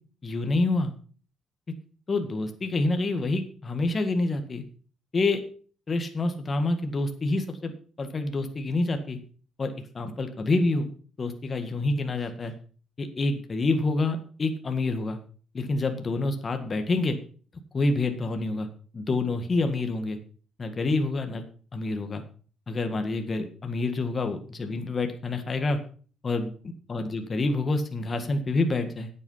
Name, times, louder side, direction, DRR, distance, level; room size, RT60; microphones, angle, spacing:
voice 1, 0.2-0.9 2.1-4.6 5.1-5.4 5.9-7.7 8.0-9.2 9.6-10.9 11.2-12.5 13.0-15.2 15.5-17.2 17.7-18.7 18.9-20.2 20.6-21.4 21.7-22.2 22.7-25.8 26.2-26.5 26.9-29.1, left 2 dB, 35° left, 6 dB, 1.8 m, -27 dB
9.4 x 8.5 x 5.7 m, 0.42 s
cardioid pair, 90°, 0 cm